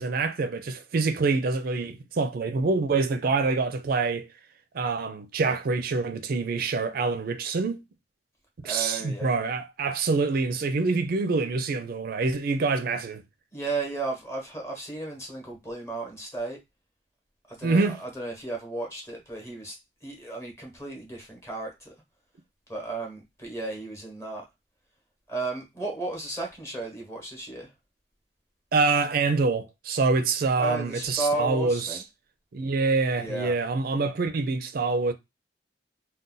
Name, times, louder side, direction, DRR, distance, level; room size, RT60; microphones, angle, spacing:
voice 1, 0.0-4.3 4.7-7.8 8.6-13.2 17.6-18.0 28.7-32.0 32.5-35.1, right 3 dB, 55° right, 0.4 m, -26 dB
voice 2, 8.6-9.3 13.5-16.6 17.5-19.8 20.0-21.9 22.7-24.4 25.3-27.7 30.6-32.0 33.2-33.5, right 2 dB, 15° left, 1.1 m, -34 dB
2.5 x 2.2 x 3.7 m
head